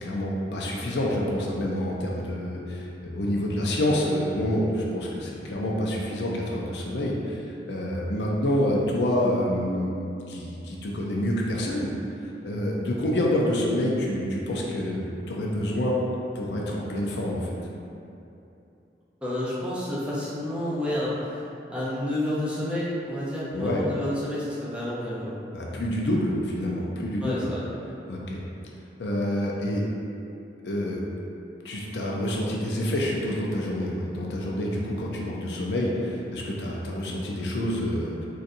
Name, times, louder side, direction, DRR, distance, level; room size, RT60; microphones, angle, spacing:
voice 1, 0.0-11.9 12.2-15.9 16.3-17.6 23.5-23.8 25.5-27.5 28.1-28.4 29.0-29.8 30.6-31.0 31.6-38.3, left 1 dB, 75° left, -2 dB, 0.5 m, -27 dB
voice 2, 19.2-25.3 27.2-27.6, left 1 dB, 5° right, -8 dB, 0.5 m, -30 dB
4.0 x 2.4 x 2.5 m, 2.8 s
head